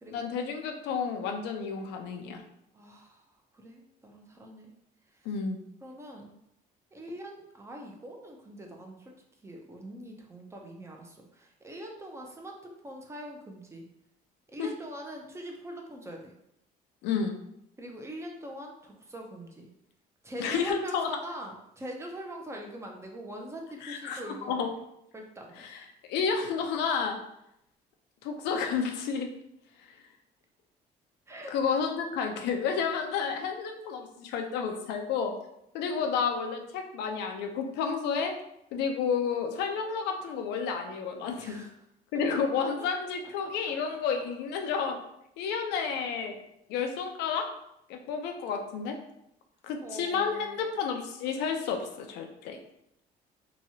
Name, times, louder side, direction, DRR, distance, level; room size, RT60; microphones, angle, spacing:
voice 1, 0.1-2.4 5.3-5.6 14.6-14.7 17.0-17.3 20.4-21.1 23.8-24.7 25.6-25.8 26.1-27.2 28.2-29.3 31.5-35.3 35.7-38.3 38.7-41.6 42.1-45.0 45.4-46.3 46.7-47.5 47.9-49.0 49.6-52.6, left 6 dB, 85° left, 4 dB, 0.4 m, -31 dB
voice 2, 2.7-3.2 3.5-4.7 5.1-5.3 5.8-6.4 6.9-9.1 9.4-13.9 14.5-16.3 17.8-19.7 20.2-24.7 25.1-25.7 31.3-31.5 41.4-41.7 42.3-42.4 43.4-43.7 44.5-44.7 49.8-50.6, right 1 dB, 15° right, 1 dB, 0.5 m, -43 dB
2.9 x 2.3 x 2.7 m, 0.78 s
cardioid pair, 110°, 17 cm